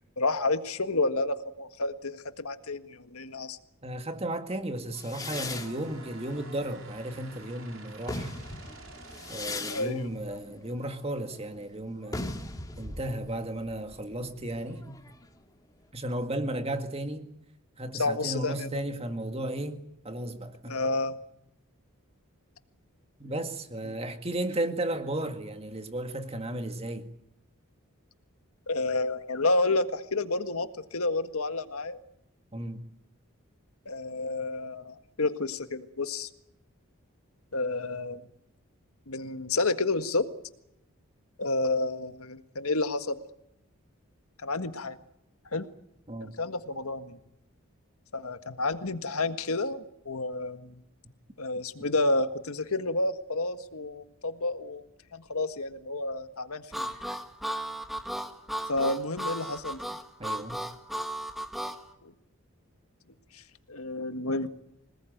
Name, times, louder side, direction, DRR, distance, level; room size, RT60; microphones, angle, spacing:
voice 1, 0.2-3.6 9.7-10.1 17.9-18.8 20.7-21.2 28.7-32.0 33.8-36.3 37.5-38.2 39.1-40.2 41.4-43.1 44.4-45.0 45.5-45.6 46.2-47.2 48.1-50.8 51.4-54.8 55.1-56.9 58.7-59.8 62.0-62.1 63.3-63.4 63.7-64.5, left 2 dB, 75° left, 1.7 m, -30 dB
voice 2, 3.8-8.3 9.3-12.3 12.8-15.0 15.9-17.3 17.8-20.8 23.2-27.1 32.5-32.8 46.1-46.3 60.2-60.6, right 1 dB, 25° right, 2.0 m, -34 dB
sound 1, 4.9-7.4 7.9-15.4, left 2 dB, 15° left, 2.3 m, -40 dB
sound 2, 5.5-9.9, right 3 dB, 65° right, 5.0 m, -50 dB
Harmonica, 56.7-61.8, right 1 dB, ahead, 1.7 m, -35 dB
26.0 x 19.0 x 9.3 m
head